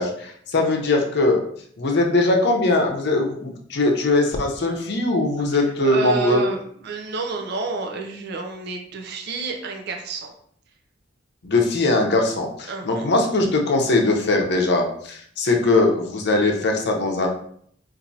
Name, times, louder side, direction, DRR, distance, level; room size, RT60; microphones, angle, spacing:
voice 1, 0.0-1.4 1.8-6.4 11.4-17.3, left 2 dB, 60° left, 1 dB, 0.7 m, -20 dB
voice 2, 5.5-10.3 12.7-13.1, right 4 dB, 60° right, 3 dB, 0.5 m, -30 dB
4.3 x 2.6 x 2.7 m, 0.62 s
head